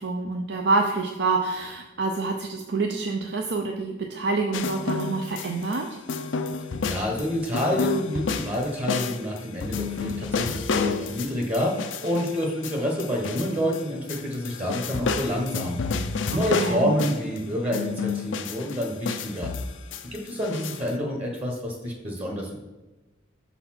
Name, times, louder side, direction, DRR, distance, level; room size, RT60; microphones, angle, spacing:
voice 1, 0.0-6.0 16.3-16.9, right 3 dB, 60° right, 2 dB, 0.6 m, -27 dB
sound 1, 4.5-5.8 6.1-13.8 14.1-17.4 17.7-20.9, left 4 dB, 75° left, 0.5 m, -30 dB
voice 2, 6.8-15.8 16.3-19.5 20.1-22.6, equal, 35° right, 0 dB, 1.2 m, -28 dB
6.7 x 4.2 x 5.9 m, 1.1 s
head